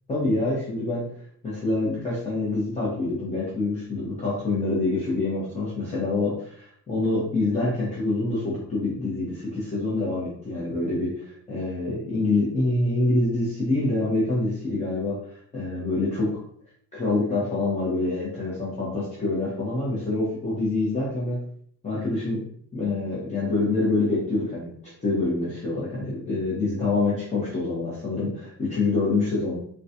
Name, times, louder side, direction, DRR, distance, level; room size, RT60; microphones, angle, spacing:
voice 1, 0.1-1.1 1.4-11.1 11.5-16.3 16.9-21.4 21.8-22.4 22.7-24.7 25.0-29.6, left 2 dB, 20° left, -9 dB, 0.9 m, -26 dB
3.8 x 2.3 x 2.7 m, 0.63 s
cardioid pair, 150°, 34 cm